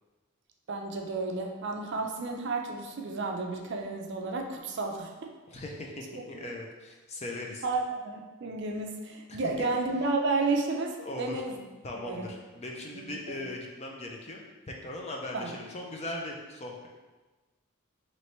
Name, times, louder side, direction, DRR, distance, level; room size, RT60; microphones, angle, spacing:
voice 1, 0.7-5.3 7.6-11.6 11.9-12.3 12.9-13.4 15.3-15.5, right 3 dB, 55° right, 2 dB, 0.4 m, -32 dB
voice 2, 5.5-7.6 9.3-9.4 11.0-11.4 11.8-16.9, left 1 dB, 30° left, 0 dB, 0.5 m, -39 dB
3.1 x 3.1 x 4.3 m, 1.2 s
head